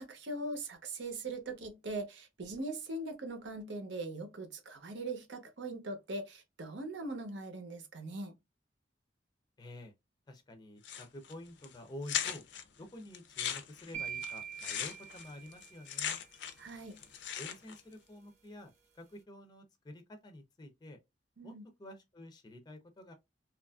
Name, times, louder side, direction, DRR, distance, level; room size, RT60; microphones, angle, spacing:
voice 1, 0.0-8.3 16.6-17.0 21.4-21.6, right 2 dB, 75° right, 0.7 m, -41 dB
voice 2, 9.6-9.9 10.3-12.4 12.8-16.2 17.4-21.0 21.4-21.5 21.8-23.1, left 1 dB, 25° left, 0.5 m, -49 dB
sound 1, 10.8-11.3 11.6-11.7 12.0-12.6 13.1-16.7 17.0-17.8, left 9 dB, 75° left, 0.5 m, -38 dB
sound 2, 13.9-16.1, right 8 dB, 40° right, 0.7 m, -43 dB
2.9 x 2.4 x 2.3 m
head